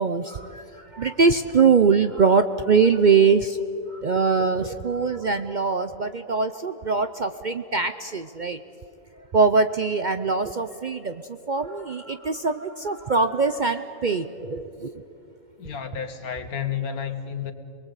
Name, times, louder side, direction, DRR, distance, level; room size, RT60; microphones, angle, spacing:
voice 1, 0.0-3.6 3.9-8.6 9.3-15.0, right 5 dB, 50° right, 10 dB, 0.6 m, -22 dB
voice 2, 15.6-17.5, left 8 dB, 85° left, 9 dB, 2.0 m, -31 dB
27.5 x 21.0 x 8.3 m, 2.8 s
omnidirectional pair, 1.5 m